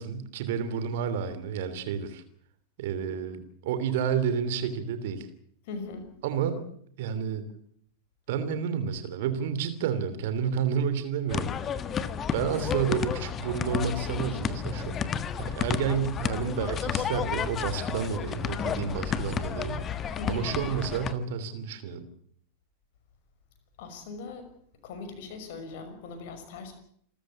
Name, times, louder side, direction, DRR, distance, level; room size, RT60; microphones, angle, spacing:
voice 1, 0.0-2.2 2.8-5.3 6.2-6.6 7.0-7.5 8.3-11.7 12.1-15.0 15.4-22.1, right 7 dB, 55° right, 12 dB, 3.0 m, -30 dB
voice 2, 5.7-6.1 20.2-20.5 23.8-24.5 24.8-26.7, left 4 dB, 50° left, 8 dB, 5.8 m, -40 dB
sound 1, 11.3-21.1, left 7 dB, 25° left, 1.5 m, -31 dB
28.0 x 14.0 x 8.5 m, 0.64 s
figure-of-eight pair, 90°, 0 cm